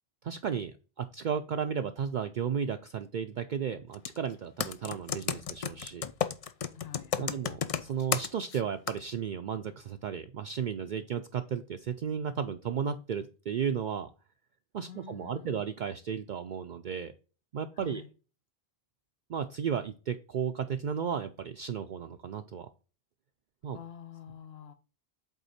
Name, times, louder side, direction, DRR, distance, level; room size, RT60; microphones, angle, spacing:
voice 1, 0.2-6.0 7.2-14.1 14.7-17.1 17.5-18.0 19.3-22.7 23.6-23.8, right 7 dB, 55° right, 7 dB, 0.6 m, -34 dB
Computer keyboard, 3.9-4.2 4.6-8.6 8.9-9.0, left 7 dB, 50° left, 0.5 m, -32 dB
voice 2, 6.7-7.4 14.8-15.7 17.8-18.1 23.7-24.7, left 8 dB, 75° left, 8 dB, 1.1 m, -47 dB
8.2 x 3.7 x 4.3 m, 0.35 s
omnidirectional pair, 1.0 m